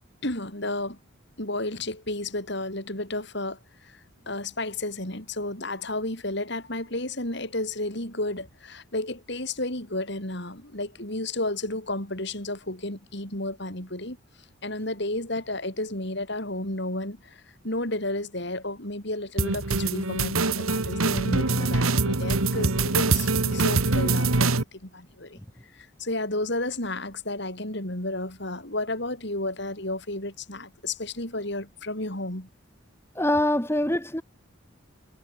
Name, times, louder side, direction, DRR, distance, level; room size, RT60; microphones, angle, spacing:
voice 1, 0.2-1.0 1.4-14.2 14.6-25.4 25.7-32.5, left 2 dB, 55° left, 5.1 m, -32 dB
sound 1, 19.4-24.6, right 3 dB, 85° right, 1.9 m, -24 dB
voice 2, 33.2-34.2, left 1 dB, 10° left, 1.9 m, -24 dB
head